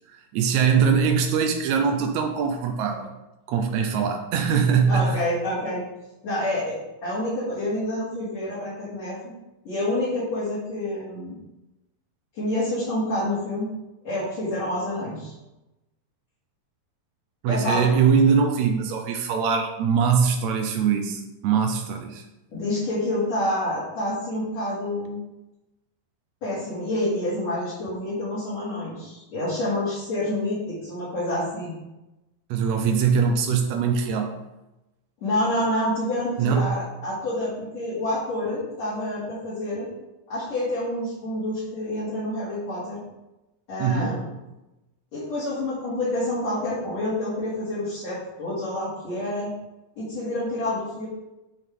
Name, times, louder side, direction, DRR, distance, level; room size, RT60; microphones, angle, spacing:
voice 1, 0.1-3.1 3.5-5.2 17.4-22.2 32.5-34.3 36.4-36.8 43.8-44.2, right 6 dB, 90° right, 3 dB, 1.6 m, -22 dB
voice 2, 4.9-5.8 6.2-9.2 9.6-11.4 12.3-13.7 14.0-15.3 17.5-17.9 22.5-25.2 26.4-31.7 35.2-39.9 40.3-43.0 43.7-44.2 45.1-49.5 50.0-51.1, left 1 dB, 50° left, -11 dB, 3.5 m, -28 dB
9.9 x 5.4 x 3.7 m, 0.97 s
omnidirectional pair, 4.2 m